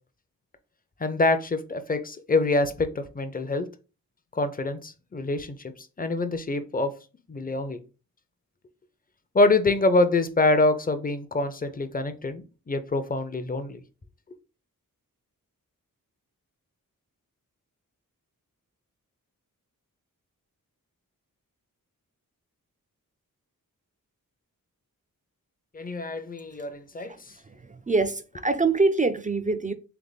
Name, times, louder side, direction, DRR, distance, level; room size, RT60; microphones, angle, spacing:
voice 1, 1.0-3.7 4.3-6.9 7.3-7.8 9.3-13.8 25.7-27.1, left 2 dB, 25° left, 0.6 m, -25 dB
voice 2, 27.5-29.7, right 3 dB, 25° right, 0.4 m, -25 dB
3.4 x 3.4 x 4.0 m
wide cardioid pair, 90°, 35 cm